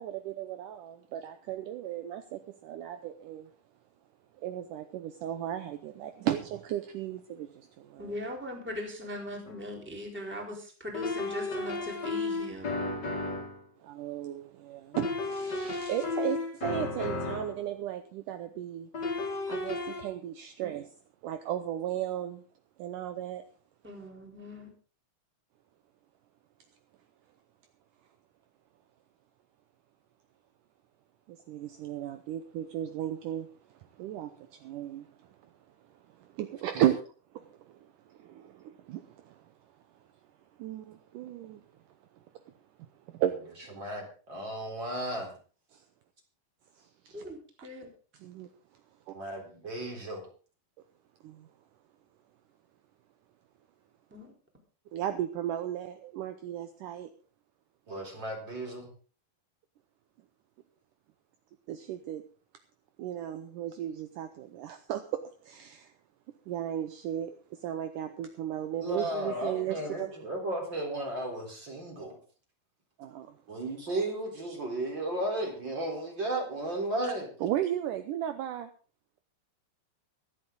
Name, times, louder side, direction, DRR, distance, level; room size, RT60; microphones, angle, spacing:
voice 1, 0.0-3.5 4.4-8.1 13.8-18.9 19.5-20.9 21.2-22.4 22.8-23.5 31.3-35.5 36.1-37.0 37.3-39.5 40.6-41.6 42.8-43.8 45.7-45.8 46.8-47.2 48.2-48.5 49.1-49.2 51.2-51.5 54.9-57.1 61.7-62.2 63.0-65.9 66.5-70.1 73.0-73.4 77.0-77.1 77.4-78.7, right 11 dB, 75° right, 2.0 m, -35 dB
voice 2, 8.0-12.8 23.8-24.7 47.1-47.9 54.1-54.3, left 1 dB, 5° right, 3.3 m, -40 dB
sound 1, 9.5-9.6 10.9-13.6 14.9-17.6 18.9-20.0, left 3 dB, 30° left, 2.3 m, -33 dB
voice 3, 43.8-45.4 49.1-50.3 57.9-58.9 68.8-72.2 73.5-77.3, right 1 dB, 30° right, 4.3 m, -34 dB
24.5 x 8.5 x 3.9 m
omnidirectional pair, 4.5 m